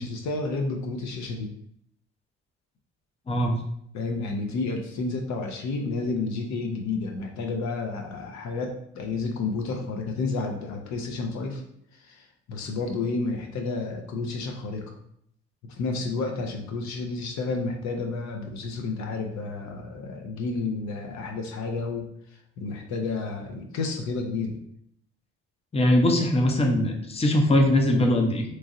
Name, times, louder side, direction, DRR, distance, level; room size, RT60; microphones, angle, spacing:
voice 1, 0.0-1.5 3.9-11.6 12.0-15.0 15.6-22.1 22.6-24.6, left 3 dB, 65° left, 2 dB, 0.6 m, -31 dB
voice 2, 3.3-3.6 25.7-28.4, left 1 dB, 20° left, 2 dB, 0.6 m, -21 dB
3.0 x 2.6 x 2.5 m, 0.71 s
supercardioid pair, 55°, 30 cm